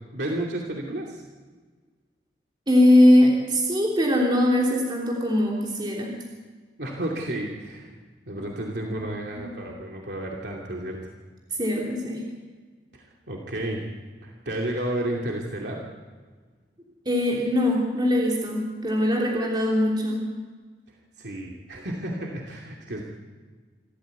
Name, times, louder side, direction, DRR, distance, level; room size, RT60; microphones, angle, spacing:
voice 1, 0.1-1.2 6.8-8.0 8.3-11.0 12.9-13.8 14.2-15.8 20.9-23.0, right 1 dB, 75° right, -1 dB, 2.7 m, -32 dB
voice 2, 2.7-6.2 11.6-12.2 17.0-20.3, left 1 dB, 25° right, -2 dB, 3.2 m, -21 dB
26.5 x 14.0 x 8.2 m, 1.5 s
head